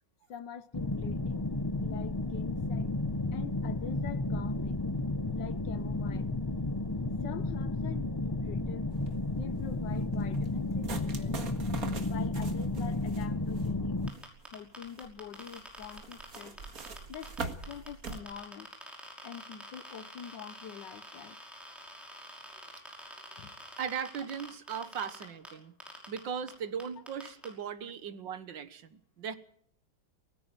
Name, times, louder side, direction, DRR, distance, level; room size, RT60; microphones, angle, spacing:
voice 1, 0.3-1.5 1.8-3.0 3.3-4.9 5.3-6.4 7.2-8.9 9.2-11.4 12.0-14.0 14.5-16.6 17.1-18.7 19.2-21.4 23.4-23.5, left 8 dB, 65° left, 1.6 m, -45 dB
sound 1, 0.7-14.1, left 2 dB, 20° left, 0.6 m, -32 dB
sound 2, 8.9-18.2, right 4 dB, 45° right, 2.2 m, -44 dB
sound 3, 14.1-17.4 17.6-25.5 25.8-26.2 26.5-26.6 26.8-27.5, equal, ahead, 5.5 m, -47 dB
voice 2, 23.8-25.7 26.1-29.4, right 7 dB, 70° right, 2.0 m, -38 dB
18.5 x 16.0 x 9.0 m
omnidirectional pair, 2.1 m